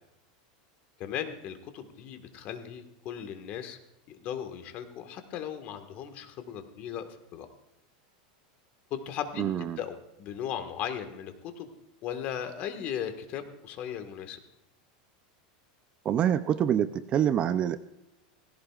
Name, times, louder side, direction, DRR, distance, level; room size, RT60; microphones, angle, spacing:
voice 1, 1.0-3.8 4.1-7.5 8.9-11.7 12.0-14.4, left 9 dB, 40° left, 8 dB, 1.6 m, -37 dB
voice 2, 9.4-9.8 16.0-17.8, right 9 dB, 25° right, 12 dB, 0.5 m, -26 dB
17.5 x 16.5 x 2.4 m, 0.86 s
supercardioid pair, 155°, 4 cm